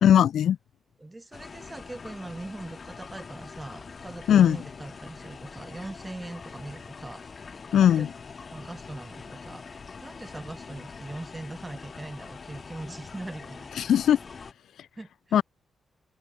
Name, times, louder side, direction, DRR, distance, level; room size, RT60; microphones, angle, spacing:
voice 1, 0.0-0.6 4.3-4.6 7.7-8.1 13.8-14.2 15.3-15.4, left 10 dB, 85° left, 0.5 m, -19 dB
voice 2, 1.0-7.4 7.7-8.1 8.5-13.7 15.0-15.4, right 2 dB, 15° right, 2.6 m, -41 dB
sound 1, 1.3-14.5, left 5 dB, 35° left, 2.0 m, -44 dB
wide cardioid pair, 150°, 0 cm